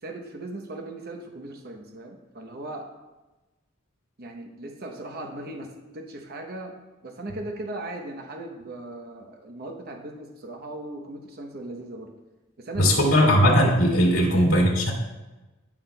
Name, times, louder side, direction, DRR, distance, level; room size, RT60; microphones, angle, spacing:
voice 1, 0.0-2.9 4.2-6.8 7.0-12.1 12.6-13.3 14.1-14.4, right 2 dB, 50° right, 3 dB, 0.9 m, -38 dB
voice 2, 12.8-14.9, equal, 85° left, -2 dB, 2.3 m, -19 dB
14.5 x 5.8 x 2.3 m, 1.1 s
head